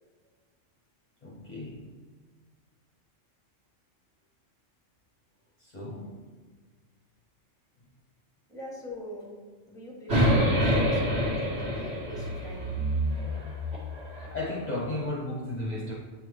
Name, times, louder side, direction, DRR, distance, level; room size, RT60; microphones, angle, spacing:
voice 1, 1.2-1.9 5.6-6.3 13.3-13.4 14.3-15.9, left 2 dB, 40° left, -5 dB, 0.9 m, -34 dB
voice 2, 8.5-9.3 9.7-12.8, equal, 5° left, -3 dB, 1.3 m, -41 dB
sound 1, 10.1-14.3, equal, 55° right, 1.9 m, -27 dB
8.1 x 3.8 x 3.3 m, 1.5 s
omnidirectional pair, 1.3 m